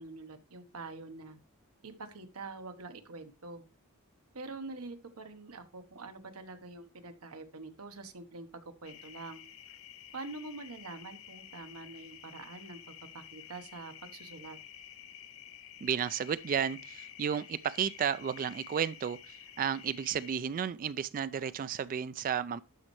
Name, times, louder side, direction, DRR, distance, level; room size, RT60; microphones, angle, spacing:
voice 1, 0.0-1.4 1.8-3.6 4.3-8.5 8.8-9.4 10.1-12.8 13.1-14.6, right 3 dB, 85° right, 1.1 m, -45 dB
sound 1, 8.8-20.4, left 10 dB, 70° left, 0.7 m, -51 dB
voice 2, 15.8-22.6, right 8 dB, 40° right, 0.3 m, -33 dB
12.0 x 5.3 x 3.1 m
head